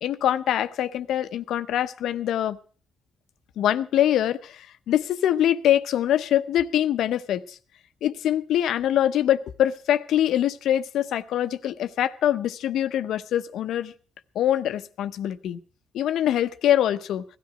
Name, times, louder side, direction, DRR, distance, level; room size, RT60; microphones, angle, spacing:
voice 1, 0.0-2.6 3.6-7.6 8.0-13.9 14.3-15.6 15.9-17.2, left 11 dB, 75° left, 13 dB, 0.8 m, -24 dB
17.0 x 12.5 x 5.0 m, 0.41 s
cardioid pair, 90°, 0 cm